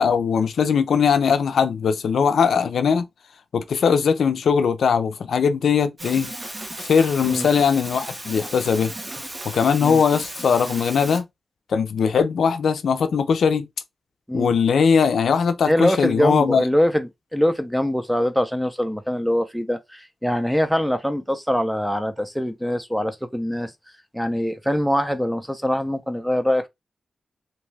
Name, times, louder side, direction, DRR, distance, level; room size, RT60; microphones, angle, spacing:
voice 1, 0.0-3.1 3.5-6.3 6.8-8.9 9.4-11.3 11.7-13.7 14.3-16.6, left 6 dB, 85° left, 0.4 m, -20 dB
sound 1, 6.0-11.2, right 1 dB, 25° right, 0.8 m, -35 dB
voice 2, 15.7-23.7 24.1-26.7, equal, ahead, 0.5 m, -23 dB
2.7 x 2.2 x 3.1 m
cardioid pair, 85°, 0 cm